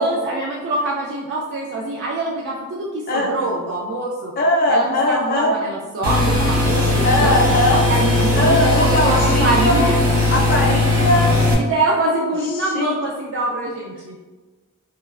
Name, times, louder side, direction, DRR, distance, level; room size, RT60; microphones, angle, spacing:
voice 1, 0.0-4.3 4.7-7.4 7.7-10.0 11.6-14.2, right 2 dB, 55° right, -3 dB, 0.3 m, -24 dB
voice 2, 4.4-5.5 7.0-7.8 8.4-9.9 10.2-11.3 12.5-12.9, left 1 dB, 40° left, -1 dB, 0.5 m, -19 dB
sound 1, 6.0-11.5, left 2 dB, 75° right, 0.8 m, -18 dB
3.0 x 2.3 x 2.3 m, 1.3 s
head